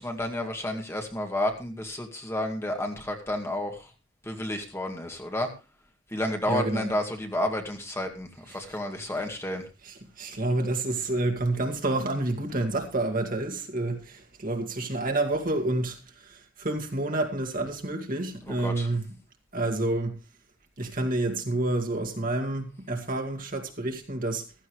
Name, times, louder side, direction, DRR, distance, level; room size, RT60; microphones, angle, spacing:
voice 1, 0.0-3.9 4.2-5.5 6.1-9.6 18.4-18.9, left 1 dB, 15° left, 2.1 m, -31 dB
voice 2, 6.5-6.9 9.9-19.0 19.5-20.2 20.8-24.5, right 2 dB, 45° right, 2.2 m, -29 dB
15.5 x 14.0 x 3.1 m
head